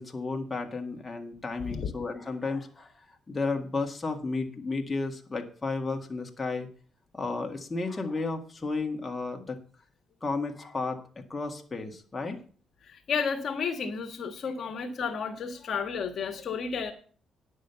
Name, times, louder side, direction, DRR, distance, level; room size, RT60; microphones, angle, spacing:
voice 1, 0.0-2.9 3.3-6.7 7.1-9.6 10.2-12.4, left 3 dB, 25° left, 3 dB, 1.8 m, -33 dB
voice 2, 12.8-16.9, left 6 dB, 60° left, 6 dB, 1.5 m, -32 dB
10.0 x 6.4 x 6.9 m, 0.42 s
cardioid pair, 90°, 0 cm